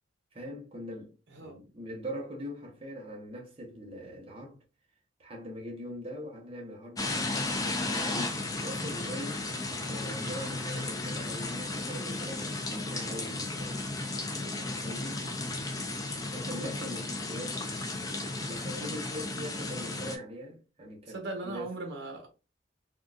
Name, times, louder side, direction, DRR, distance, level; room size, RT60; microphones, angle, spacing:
voice 1, 0.3-1.1 1.4-4.6 5.2-9.4 9.8-13.8 14.8-15.2 16.3-17.7 18.4-21.2 21.4-21.7, equal, 30° right, 0.9 m, -42 dB
voice 2, 1.3-1.6 14.3-14.7 16.5-16.8 18.3-18.4 21.1-22.3, right 2 dB, 70° right, 1.0 m, -40 dB
sound 1, 7.0-20.2, left 2 dB, 20° left, 0.4 m, -34 dB
3.7 x 2.3 x 2.4 m
head